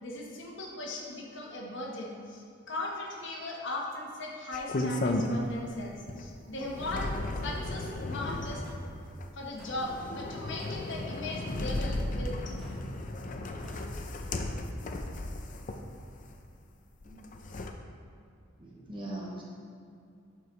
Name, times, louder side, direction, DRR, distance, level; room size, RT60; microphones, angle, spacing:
voice 1, 0.0-7.1 7.4-8.6 9.3-12.4, left 2 dB, 60° left, -1 dB, 1.2 m, -38 dB
sound 1, 4.5-5.7 6.1-16.3 17.0-17.7, left 1 dB, 40° left, 0.5 m, -35 dB
sound 2, 7.6-7.9 8.6-8.9 9.6-9.8 10.6-10.9 11.6-11.8 12.6-12.8 13.6-13.9, equal, ahead, 0.9 m, -54 dB
voice 2, 17.0-17.4 18.6-19.4, right 1 dB, 25° right, -4 dB, 0.8 m, -41 dB
11.5 x 4.7 x 3.2 m, 2.4 s
head